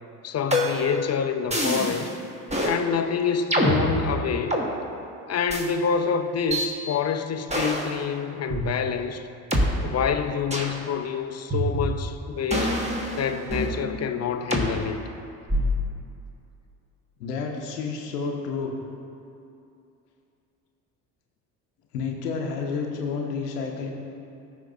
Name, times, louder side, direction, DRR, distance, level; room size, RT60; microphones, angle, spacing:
voice 1, 0.2-2.1 2.6-4.6 5.3-9.3 9.8-12.8 13.1-15.0, left 6 dB, 35° left, 0.6 m, -27 dB
sound 1, 0.5-1.0 1.5-2.1 2.5-2.8 3.5-4.7 5.5-5.7 6.5-6.7 7.5-7.9 8.5-8.6 9.5-9.6 10.5-10.8 11.5-12.1 12.5-13.8 14.5-14.7 15.5-15.9, equal, 15° right, 1.4 m, -25 dB
voice 2, 17.2-18.7 21.9-23.9, left 5 dB, 85° left, 0.8 m, -30 dB
14.0 x 5.2 x 2.6 m
hypercardioid pair, 60°, 46 cm